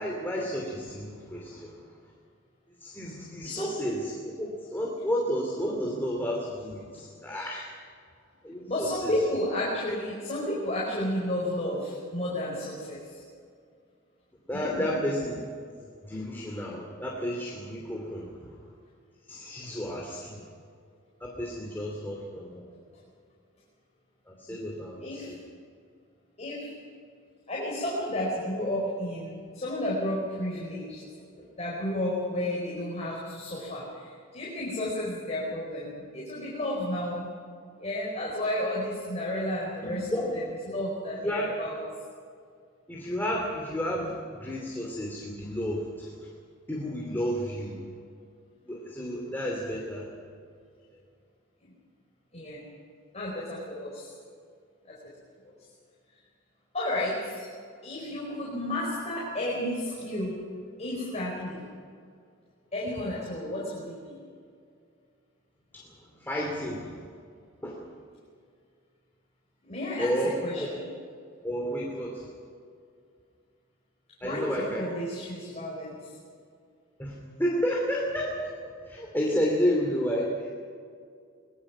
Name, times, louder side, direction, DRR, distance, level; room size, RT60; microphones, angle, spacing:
voice 1, 0.0-1.9 2.8-7.7 8.4-9.1 14.5-15.4 16.0-18.5 19.3-20.4 21.2-22.7 24.3-25.4 39.8-40.4 41.2-41.5 42.9-46.1 46.7-47.8 48.7-50.1 65.7-65.9 66.2-67.0 67.6-67.8 70.0-70.7 71.4-72.3 74.2-74.9 77.0-78.5 78.9-80.5, equal, 10° left, -2 dB, 2.8 m, -31 dB
voice 2, 3.4-3.8 8.6-13.2 14.5-15.0 24.5-24.6 25.0-25.4 26.4-26.7 27.5-31.1 31.4-37.3 37.8-41.8 52.3-52.6 53.1-54.1 54.9-55.0 55.4-55.5 56.7-57.5 57.8-60.4 60.8-61.6 62.7-64.2 69.6-70.1 70.4-70.9 74.2-76.1, left 1 dB, 35° left, -5 dB, 4.9 m, -32 dB
23.0 x 20.5 x 6.1 m, 2.2 s
head